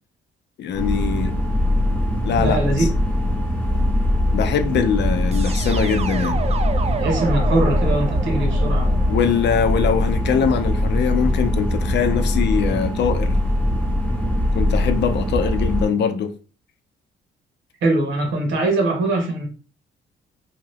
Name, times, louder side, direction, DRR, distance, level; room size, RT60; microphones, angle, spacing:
voice 1, 0.6-1.4 2.2-2.9 4.3-6.4 9.1-13.4 14.5-16.3, left 7 dB, 60° left, 0.5 m, -22 dB
sound 1, 0.7-15.9, left 1 dB, 5° left, 0.7 m, -21 dB
voice 2, 2.4-2.9 7.0-9.0 17.8-19.5, right 2 dB, 75° right, 1.1 m, -22 dB
sound 2, 5.3-10.2, right 5 dB, 35° right, 0.4 m, -31 dB
2.8 x 2.4 x 3.3 m
cardioid pair, 90°, 20 cm